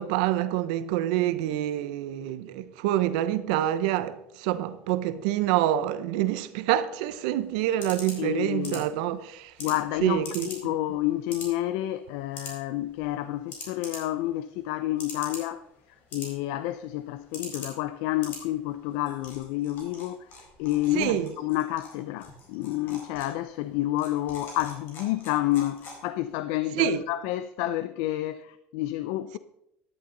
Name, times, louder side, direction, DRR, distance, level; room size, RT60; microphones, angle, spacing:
voice 1, 0.0-9.5 10.0-10.5 20.9-21.3 26.7-27.0, right 13 dB, 85° right, 0.7 m, -26 dB
sound 1, 7.0-26.3, left 3 dB, 55° left, 4.3 m, -45 dB
voice 2, 8.2-8.9 9.6-15.7 16.1-29.4, left 15 dB, 80° left, 0.5 m, -29 dB
14.0 x 11.0 x 3.9 m
cardioid pair, 130°, 4 cm